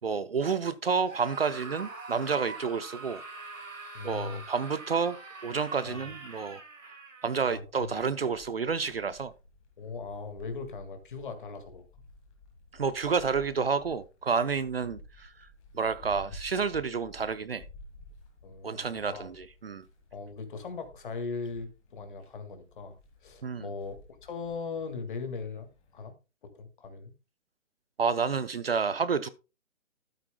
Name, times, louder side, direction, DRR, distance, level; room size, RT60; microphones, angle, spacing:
voice 1, 0.0-3.2 4.0-5.2 5.4-7.0 7.2-9.3 12.7-15.5 15.7-17.6 18.6-19.8 23.4-23.7 28.0-29.3, right 5 dB, 50° right, 0.6 m, -30 dB
Screaming, 1.0-7.5, right 3 dB, 75° right, 5.0 m, -44 dB
voice 2, 3.9-4.4 5.8-6.0 7.5-7.9 9.8-11.8 18.4-19.3 20.1-23.0 23.2-24.0 24.2-26.1 26.4-27.1, left 4 dB, 40° left, 2.0 m, -39 dB
sound 1, 7.5-26.1, left 2 dB, 10° left, 1.7 m, -53 dB
13.0 x 9.0 x 2.2 m
hypercardioid pair, 165°, 40 cm